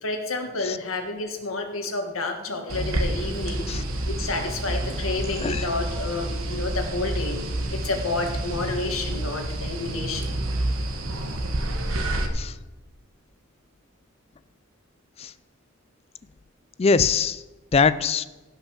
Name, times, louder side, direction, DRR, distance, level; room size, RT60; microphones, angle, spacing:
voice 1, 0.0-10.3, left 3 dB, 90° left, 4 dB, 1.6 m, -30 dB
sound 1, 2.7-12.3, right 1 dB, 85° right, 1.2 m, -29 dB
voice 2, 16.8-17.4 17.7-18.3, left 5 dB, 30° left, 15 dB, 0.4 m, -22 dB
16.5 x 5.8 x 5.7 m, 1.2 s
head